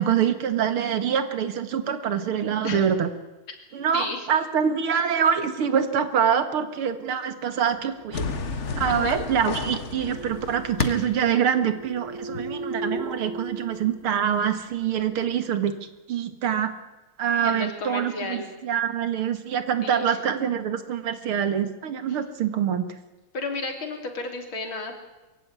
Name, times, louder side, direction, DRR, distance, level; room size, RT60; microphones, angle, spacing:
voice 1, 0.0-3.1 3.7-8.3 8.8-15.7 16.1-16.7 17.2-22.9, right 8 dB, 85° right, 10 dB, 2.6 m, -25 dB
voice 2, 3.9-4.3 8.9-9.2 12.3-12.4 17.4-18.5 19.8-20.2 22.1-22.2 23.3-24.9, left 3 dB, 70° left, 5 dB, 3.9 m, -32 dB
sound 1, 8.0-14.5, right 2 dB, 10° left, 6.5 m, -38 dB
sound 2, 8.1-11.3, left 4 dB, 40° left, 1.4 m, -31 dB
23.0 x 15.5 x 9.6 m, 1.1 s
omnidirectional pair, 2.3 m